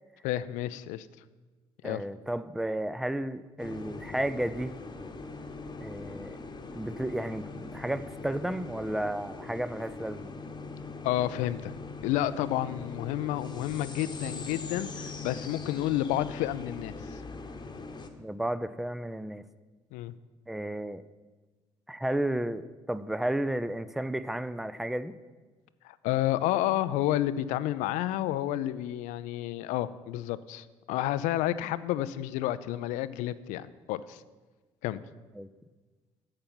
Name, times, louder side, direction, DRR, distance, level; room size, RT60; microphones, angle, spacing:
voice 1, 0.2-1.1 1.8-2.0 11.0-11.7 12.0-16.9 19.9-20.1 25.8-34.2 34.8-35.0, left 13 dB, 70° left, 15 dB, 0.4 m, -30 dB
voice 2, 1.8-4.7 5.8-6.4 6.7-10.3 18.2-19.4 20.5-21.0 21.9-25.1 35.4-35.5, right 1 dB, ahead, 14 dB, 0.5 m, -33 dB
sound 1, 3.6-18.1, left 3 dB, 30° left, 1.1 m, -41 dB
8.7 x 7.7 x 5.6 m, 1.3 s
hypercardioid pair, 50°, 13 cm